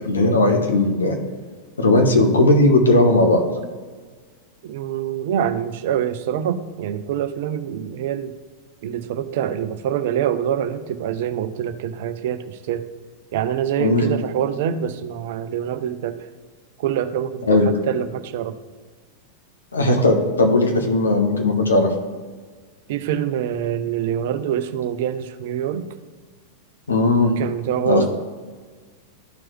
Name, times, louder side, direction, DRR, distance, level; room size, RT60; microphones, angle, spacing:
voice 1, 0.0-1.2 1.8-3.4 13.8-14.1 17.5-17.7 19.7-21.9 26.9-27.3 27.8-28.1, left 2 dB, 75° left, 3 dB, 1.2 m, -17 dB
voice 2, 4.6-8.3 8.8-12.8 13.3-16.2 16.8-18.6 22.9-25.9 27.4-28.1, right 9 dB, 50° right, 11 dB, 0.5 m, -25 dB
12.5 x 4.6 x 3.2 m, 1.5 s
figure-of-eight pair, 90°, 0 cm